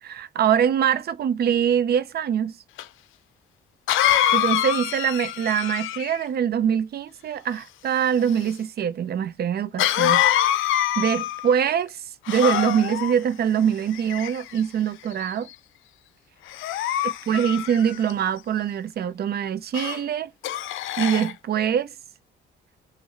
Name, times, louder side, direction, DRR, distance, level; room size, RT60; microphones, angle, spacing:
voice 1, 0.0-2.6 4.3-10.2 11.0-12.0 12.3-15.5 17.3-20.3 21.0-21.9, right 8 dB, 50° right, 0.6 m, -23 dB
Cough, 2.8-2.9 3.9-6.3 9.8-11.6 12.3-13.1 13.9-14.6 15.2-15.5 16.5-18.1 19.7-20.0 20.4-21.3, left 12 dB, 80° left, 0.5 m, -24 dB
4.0 x 2.7 x 3.0 m
cardioid pair, 90°, 20 cm